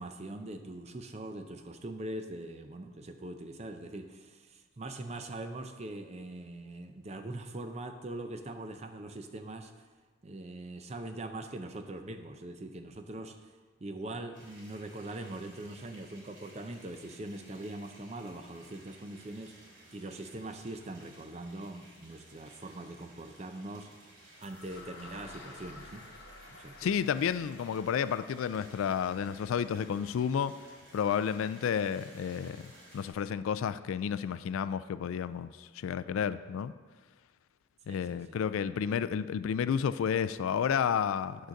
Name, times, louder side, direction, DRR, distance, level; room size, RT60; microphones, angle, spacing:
voice 1, 0.0-9.7 10.2-13.5 13.8-19.5 19.9-23.9 24.4-26.0 26.5-26.9 37.9-39.1, right 2 dB, 30° right, 7 dB, 0.5 m, -42 dB
sound 1, 14.3-33.1, right 1 dB, 60° right, 2.7 m, -57 dB
sound 2, 24.4-32.4, left 3 dB, 55° left, 1.0 m, -54 dB
voice 2, 26.8-30.5 30.9-32.6 32.9-36.7 37.9-41.5, left 7 dB, 80° left, 14 dB, 0.3 m, -31 dB
8.8 x 4.0 x 6.4 m, 1.4 s
head